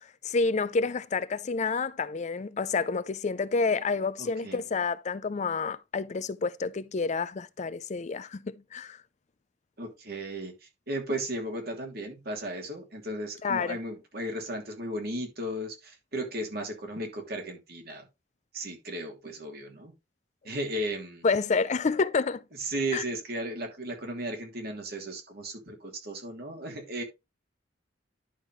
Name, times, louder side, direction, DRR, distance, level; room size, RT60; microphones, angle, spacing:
voice 1, 0.0-9.0 13.4-13.8 21.2-22.4 22.9-23.0, left 4 dB, 40° left, 0.4 m, -29 dB
voice 2, 4.2-4.6 9.8-10.5 10.9-18.1 18.5-19.9 20.4-21.3 22.6-27.0, right 1 dB, 55° right, 2.9 m, -35 dB
11.0 x 5.8 x 3.1 m
head